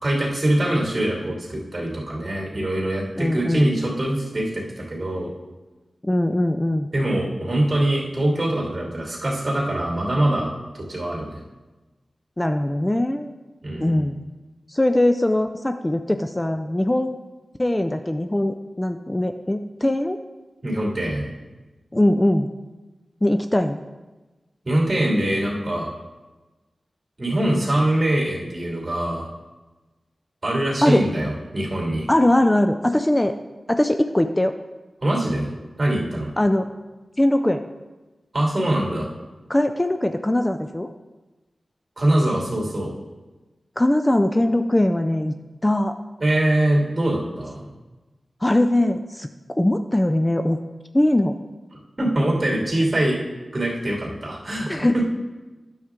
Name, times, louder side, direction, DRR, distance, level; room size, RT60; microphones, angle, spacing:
voice 1, 0.0-5.3 6.9-11.4 13.6-14.0 20.6-21.3 24.6-25.9 27.2-29.3 30.4-32.1 35.0-35.5 35.8-36.3 38.3-39.1 42.0-42.9 46.2-47.7 52.0-53.2 53.5-55.0, right 1 dB, 40° right, -2 dB, 2.7 m, -23 dB
voice 2, 3.2-3.7 6.0-6.9 12.4-13.3 13.8-14.2 14.7-17.2 17.6-20.2 21.9-22.5 23.2-23.8 30.8-31.1 32.1-33.3 33.7-34.6 36.4-36.7 37.2-37.6 39.5-40.9 43.8-45.4 45.6-46.0 48.4-49.3 49.6-50.6 50.9-51.4 54.7-55.0, left 1 dB, 20° left, 7 dB, 0.4 m, -21 dB
9.3 x 7.2 x 3.7 m, 1.2 s
cardioid pair, 45°, 0 cm